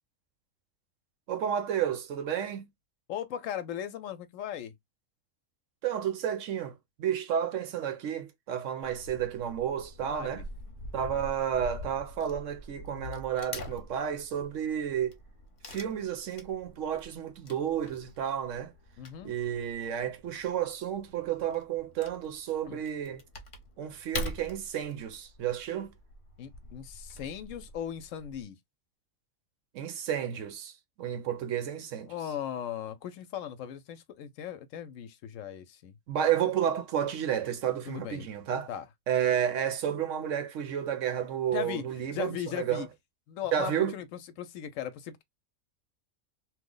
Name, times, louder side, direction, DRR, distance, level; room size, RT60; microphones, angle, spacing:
voice 1, 1.3-2.7 5.8-10.4 10.9-15.2 15.7-18.7 19.2-23.2 23.8-25.9 29.7-30.7 31.0-32.1 36.1-38.7 39.1-42.8 43.5-43.9, right 9 dB, 70° right, 1.0 m, -31 dB
voice 2, 3.1-4.7 10.0-10.4 19.0-19.3 22.6-22.8 26.4-28.6 32.0-35.9 37.9-38.3 38.7-38.9 41.5-41.8 42.1-42.9 43.3-45.2, left 9 dB, 75° left, 0.9 m, -38 dB
Wood / Tearing, 8.8-28.4, left 2 dB, 45° left, 0.8 m, -45 dB
3.0 x 2.1 x 3.7 m
omnidirectional pair, 1.4 m